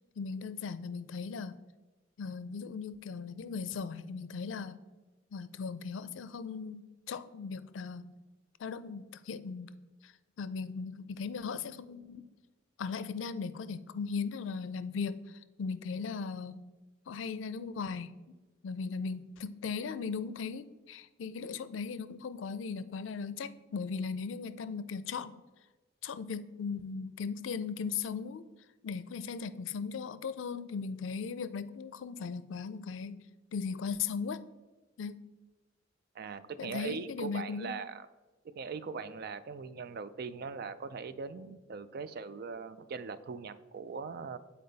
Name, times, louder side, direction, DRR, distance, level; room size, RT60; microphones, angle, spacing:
voice 1, 0.1-1.6 2.2-4.8 5.3-8.1 8.6-12.3 12.8-16.6 17.1-18.3 18.6-25.4 26.0-28.5 28.8-34.4 35.0-35.2 36.6-37.8, left 5 dB, 85° left, 14 dB, 0.4 m, -38 dB
voice 2, 36.1-37.9 38.4-44.4, right 5 dB, 55° right, 13 dB, 0.4 m, -40 dB
8.5 x 4.2 x 4.0 m, 1.2 s
head